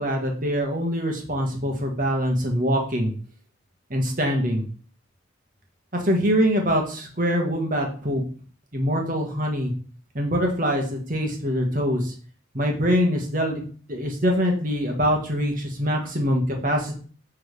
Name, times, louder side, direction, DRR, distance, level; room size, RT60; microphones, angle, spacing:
voice 1, 0.0-3.1 3.9-4.6 5.9-8.2 8.7-9.7 10.1-12.1 12.5-13.6 13.9-16.9, equal, 45° right, 2 dB, 1.6 m, -24 dB
7.2 x 3.7 x 4.8 m, 0.42 s
head